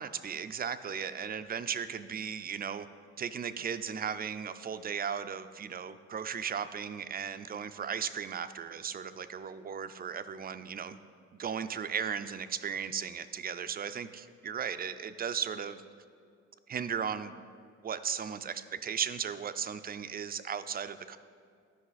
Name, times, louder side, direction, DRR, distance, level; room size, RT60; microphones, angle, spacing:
voice 1, 0.0-2.9 3.2-11.0 11.3-15.8 16.7-17.3 17.8-21.2, right 7 dB, 30° right, 11 dB, 0.4 m, -36 dB
11.0 x 5.4 x 4.0 m, 2.3 s
cardioid pair, 90°, 30 cm